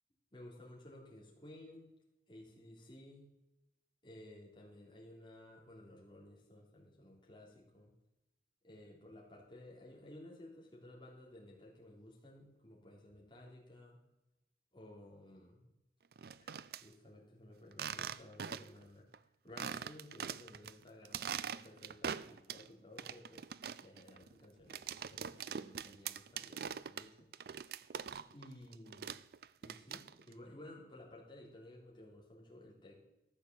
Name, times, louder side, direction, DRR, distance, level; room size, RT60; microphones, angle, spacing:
voice 1, 0.3-1.9 2.3-3.3 4.0-7.9 8.6-14.0 14.7-15.7 16.4-16.5 16.8-19.1 19.4-23.5 23.8-27.3 28.3-29.2 29.6-33.0, left 1 dB, 25° left, -3 dB, 3.3 m, -55 dB
sound 1, 16.1-16.8 17.7-18.8 19.1-19.2 19.6-20.7 21.0-22.7 23.0-28.5 28.7-30.3, right 7 dB, 55° right, 0.4 m, -43 dB
13.5 x 6.9 x 7.4 m, 0.91 s
head